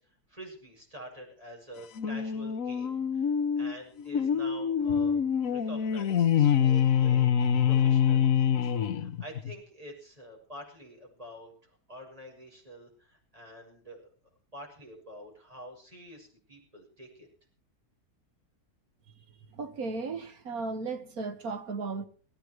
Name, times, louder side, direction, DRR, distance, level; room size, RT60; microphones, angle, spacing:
voice 1, 0.3-5.2 5.5-14.1 14.5-17.3, equal, 20° right, 6.4 m, -47 dB
sound 1, 2.0-9.5, left 8 dB, 60° left, 1.4 m, -25 dB
voice 2, 19.5-22.1, right 4 dB, 65° right, 2.0 m, -35 dB
17.5 x 15.0 x 4.7 m
omnidirectional pair, 1.6 m